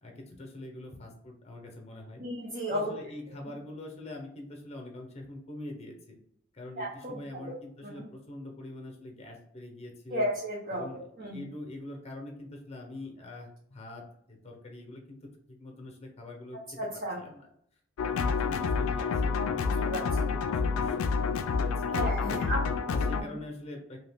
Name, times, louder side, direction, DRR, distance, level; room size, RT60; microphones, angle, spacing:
voice 1, 0.0-2.2 2.7-6.2 6.5-10.3 10.7-15.2 15.5-17.5 18.0-22.5 22.9-24.0, left 2 dB, 30° left, 2 dB, 0.7 m, -44 dB
voice 2, 2.2-2.9 6.8-7.5 7.8-8.0 10.1-10.8 11.2-11.4 16.8-17.2 19.8-20.0 21.9-23.0, equal, 45° right, -5 dB, 0.7 m, -34 dB
sound 1, 18.0-23.2, left 5 dB, 85° left, 0.3 m, -28 dB
2.8 x 2.4 x 3.4 m, 0.70 s
head